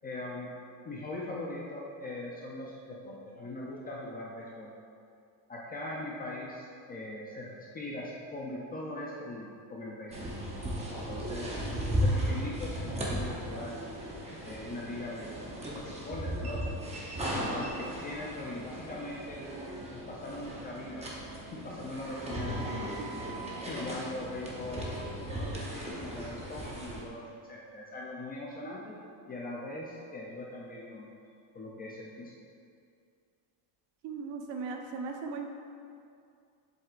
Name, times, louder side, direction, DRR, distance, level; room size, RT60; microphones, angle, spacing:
voice 1, 0.0-4.7 5.5-10.3 10.9-11.6 11.9-13.8 14.4-16.8 17.3-19.4 19.9-21.1 21.5-23.0 23.7-24.9 25.3-28.9 29.3-31.1 31.5-32.4, left 1 dB, 20° left, -4 dB, 0.4 m, -41 dB
sound 1, 10.1-27.0, equal, 15° right, 0.8 m, -36 dB
voice 2, 34.0-35.5, right 4 dB, 55° right, 3 dB, 0.9 m, -38 dB
7.7 x 7.6 x 2.5 m, 2.4 s
cardioid pair, 165°, 49 cm